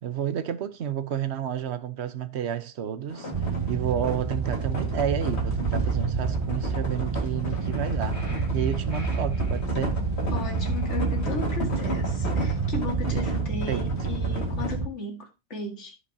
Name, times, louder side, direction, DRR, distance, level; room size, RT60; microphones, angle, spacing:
voice 1, 0.0-3.3 3.7-8.2 8.5-10.0 13.1-13.2 13.7-13.8, right 9 dB, 70° right, 1.1 m, -30 dB
sound 1, 3.1-14.8, left 1 dB, 65° left, 2.2 m, -36 dB
sound 2, 3.3-14.9, right 4 dB, 35° right, 0.6 m, -28 dB
sound 3, 7.5-9.7 10.3-11.6, left 1 dB, 30° left, 1.9 m, -47 dB
voice 2, 10.3-15.9, left 3 dB, 85° left, 2.1 m, -35 dB
15.0 x 5.2 x 2.8 m
omnidirectional pair, 1.2 m